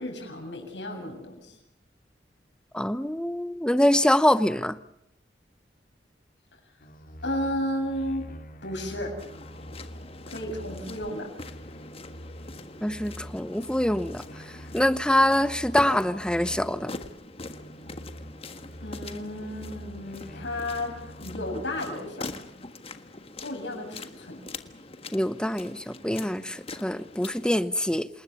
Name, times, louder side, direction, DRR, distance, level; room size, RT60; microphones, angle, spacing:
voice 1, 0.0-1.6 7.2-8.2 8.6-9.2 10.3-11.3 18.8-22.3 23.4-24.4, left 1 dB, 90° left, 7.2 m, -33 dB
voice 2, 2.7-4.8 12.8-14.2 14.7-16.9 25.1-28.1, left 1 dB, 5° left, 0.9 m, -24 dB
sound 1, 6.8-11.1 11.4-17.1 17.4-22.0, equal, 50° left, 2.7 m, -44 dB
sound 2, 9.2-27.6, left 3 dB, 35° left, 1.5 m, -43 dB
28.0 x 20.5 x 7.1 m
head